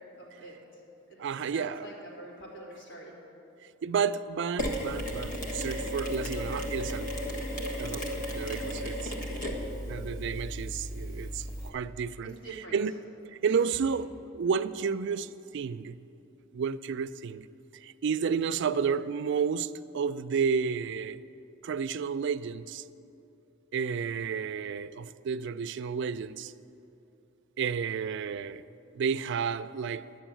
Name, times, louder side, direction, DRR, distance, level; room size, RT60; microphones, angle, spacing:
voice 1, 0.2-0.6 1.1-1.2 1.5-3.1 12.2-12.8 13.8-14.0, right 2 dB, 70° left, 3.1 m, -45 dB
voice 2, 1.2-1.9 3.8-7.3 7.8-9.1 9.9-12.4 12.7-12.9 13.4-14.1 14.3-16.0 16.5-17.5 17.7-21.2 21.6-22.8 23.7-26.5 27.6-28.6 28.9-30.0, right 6 dB, 60° right, 0.4 m, -31 dB
Mechanisms, 4.6-11.7, equal, 40° left, 1.4 m, -34 dB
10.5 x 7.1 x 9.0 m
head